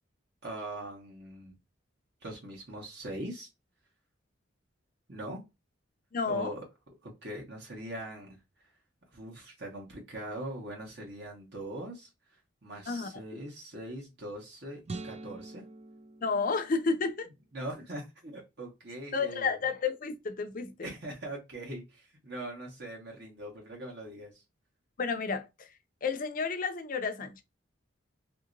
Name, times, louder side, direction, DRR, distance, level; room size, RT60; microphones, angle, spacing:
voice 1, 0.4-1.6 2.2-3.5 5.1-5.4 6.2-6.6 7.0-8.4 9.1-12.1 12.6-15.6 17.5-19.5 20.8-24.4, right 1 dB, 55° right, 1.2 m, -41 dB
voice 2, 6.1-6.5 12.9-13.1 16.2-17.3 19.1-20.9 25.0-25.7 26.0-27.4, left 4 dB, 45° left, 0.5 m, -31 dB
sound 1, 14.8-17.2, right 3 dB, 30° right, 0.3 m, -44 dB
2.9 x 2.9 x 2.5 m
head